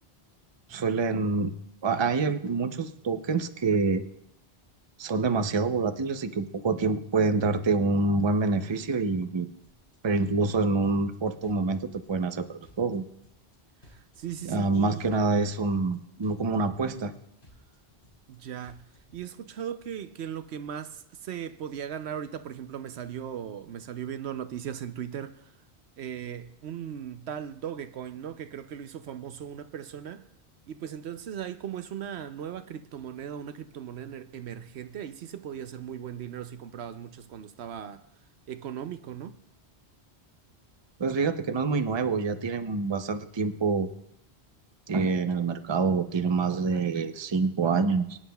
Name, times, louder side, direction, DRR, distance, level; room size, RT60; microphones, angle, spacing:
voice 1, 0.7-1.5 1.8-4.0 5.0-9.5 10.0-13.0 14.4-17.1 41.0-43.9 44.9-48.2, right 4 dB, 30° right, 0.6 m, -26 dB
sound 1, 9.6-9.9 10.2-11.1 11.4-12.3 12.6-13.5 13.8-14.7 15.0-15.9 16.2-17.1 17.4-18.3 18.6-19.2, left 1 dB, 50° left, 3.2 m, -57 dB
voice 2, 13.9-15.0 18.3-18.9 19.1-25.4 26.0-30.3 30.7-38.0 38.5-39.4, right 9 dB, 80° right, 0.9 m, -38 dB
24.0 x 9.7 x 2.3 m
omnidirectional pair, 1.1 m